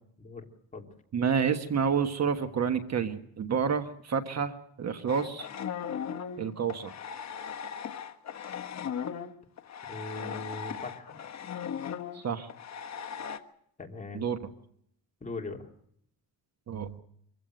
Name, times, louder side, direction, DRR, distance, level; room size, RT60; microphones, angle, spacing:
voice 1, 1.1-4.5 4.8-5.5 6.4-6.9 12.1-12.5 14.1-14.4 16.7-17.0, right 6 dB, 45° right, 8 dB, 1.4 m, -29 dB
sound 1, 5.1-13.4, left 7 dB, 45° left, 1.3 m, -38 dB
voice 2, 9.9-11.2 13.8-14.2 15.2-15.7, left 3 dB, 20° left, 1 dB, 3.0 m, -40 dB
25.0 x 16.0 x 7.8 m, 0.69 s
cardioid pair, 130°, 37 cm